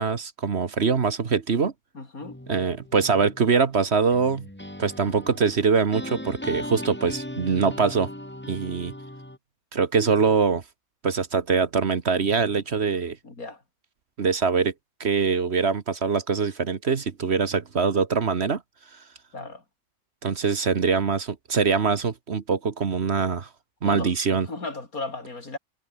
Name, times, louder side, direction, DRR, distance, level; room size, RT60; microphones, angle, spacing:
voice 1, 0.0-1.7 2.5-4.5 4.8-8.1 8.5-8.9 9.7-10.6 11.0-13.2 14.2-14.7 15.0-18.6 20.2-23.5 23.8-24.5, right 5 dB, 50° right, 1.5 m, -23 dB
voice 2, 1.9-2.4 13.2-13.6 19.3-19.6 23.8-25.6, left 3 dB, 80° left, 4.7 m, -36 dB
sound 1, 2.2-9.4, left 1 dB, 5° left, 2.4 m, -38 dB
omnidirectional pair, 1.5 m